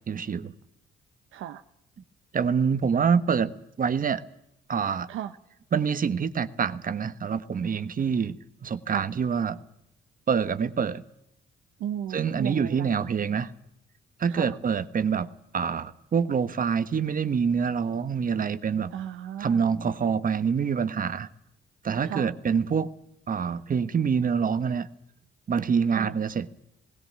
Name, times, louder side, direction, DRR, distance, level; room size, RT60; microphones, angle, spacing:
voice 1, 0.1-0.5 2.3-3.5 3.8-4.2 4.7-5.1 5.7-8.4 8.6-9.6 10.3-11.0 12.1-13.5 14.2-15.3 15.5-18.9 19.4-21.3 21.8-22.9 23.3-24.9 25.5-26.5, right 6 dB, 45° right, 12 dB, 1.3 m, -26 dB
voice 2, 11.8-12.9 14.3-14.6 18.9-19.6 22.1-22.3 25.9-26.2, right 10 dB, 85° right, 8 dB, 0.9 m, -35 dB
19.5 x 17.5 x 8.7 m, 0.79 s
cardioid pair, 90°, 20 cm